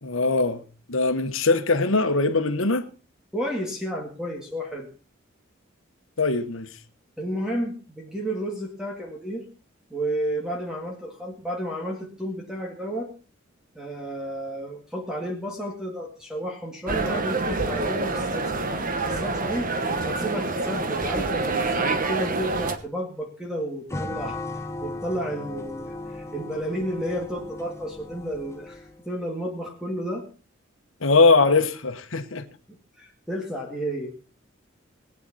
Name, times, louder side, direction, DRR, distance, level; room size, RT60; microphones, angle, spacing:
voice 1, 0.0-0.6 0.9-2.8 6.2-6.7 31.0-32.5, left 3 dB, 75° left, 1.3 m, -21 dB
voice 2, 3.3-4.9 7.2-9.5 9.9-13.1 13.8-19.7 20.0-30.3 32.7-34.2, equal, 5° right, 2.0 m, -32 dB
sound 1, 16.9-22.8, right 3 dB, 45° right, 1.2 m, -27 dB
sound 2, 23.9-29.0, left 2 dB, 15° left, 1.0 m, -37 dB
19.0 x 9.6 x 4.2 m
head